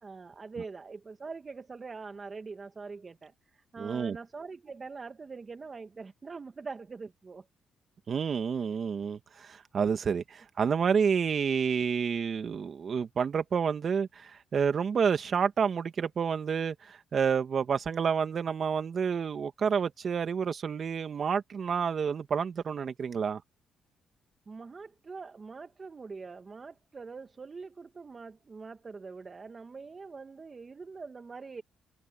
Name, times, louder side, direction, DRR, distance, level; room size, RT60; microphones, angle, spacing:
voice 1, 0.0-7.5 24.5-31.6, right 4 dB, 35° right, 1.3 m, -43 dB
voice 2, 3.8-4.2 8.1-23.4, right 6 dB, 50° right, 2.0 m, -29 dB
open air
cardioid pair, 90°, 0 cm